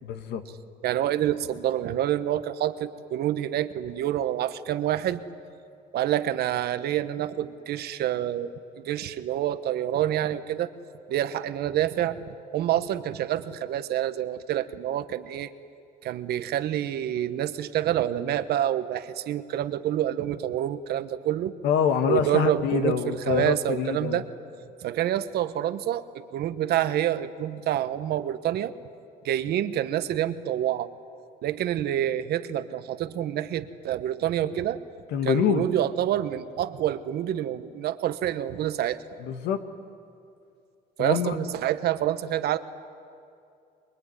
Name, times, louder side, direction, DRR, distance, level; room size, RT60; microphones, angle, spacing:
voice 1, 0.0-0.4 21.6-24.2 35.1-35.7 39.2-39.6 41.0-41.4, left 8 dB, 80° left, 8 dB, 1.9 m, -25 dB
voice 2, 0.8-5.3 5.9-10.7 11.1-15.5 16.0-21.5 22.1-24.2 24.8-28.7 29.2-30.9 31.4-34.8 35.2-39.0 41.0-42.6, right 12 dB, 70° right, 11 dB, 1.2 m, -27 dB
24.0 x 22.5 x 9.9 m, 2.5 s
cardioid pair, 110°, 17 cm